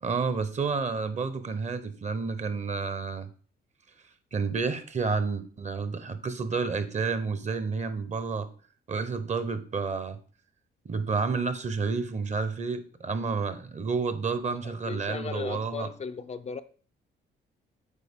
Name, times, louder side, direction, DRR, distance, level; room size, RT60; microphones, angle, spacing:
voice 1, 0.0-3.3 4.3-8.5 8.9-10.2 10.8-15.9, right 4 dB, 35° right, 0.8 m, -30 dB
voice 2, 14.4-16.6, left 5 dB, 35° left, 0.4 m, -37 dB
8.3 x 4.5 x 3.6 m
cardioid pair, 90°, 20 cm